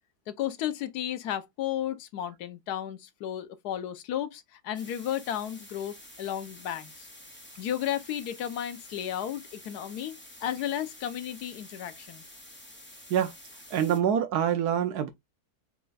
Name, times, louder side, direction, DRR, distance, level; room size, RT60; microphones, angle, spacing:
voice 1, 0.3-7.1 7.6-12.2, left 10 dB, 80° left, 1.3 m, -33 dB
sound 1, 4.7-14.0, left 1 dB, 10° left, 0.9 m, -49 dB
voice 2, 13.7-15.1, right 9 dB, 85° right, 1.2 m, -25 dB
4.4 x 2.3 x 3.9 m
omnidirectional pair, 1.6 m